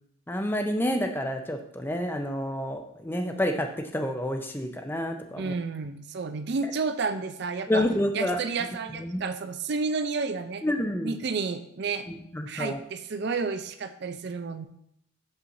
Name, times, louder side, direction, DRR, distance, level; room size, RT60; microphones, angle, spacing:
voice 1, 0.3-3.7 3.9-5.5 7.7-8.4 8.9-9.2 10.6-11.1 12.1-12.8, left 1 dB, 10° left, 4 dB, 0.5 m, -29 dB
voice 2, 5.4-7.9 8.1-10.6 11.0-12.1 12.5-14.7, right 4 dB, 55° right, 9 dB, 0.5 m, -31 dB
7.2 x 5.6 x 2.6 m, 0.72 s
head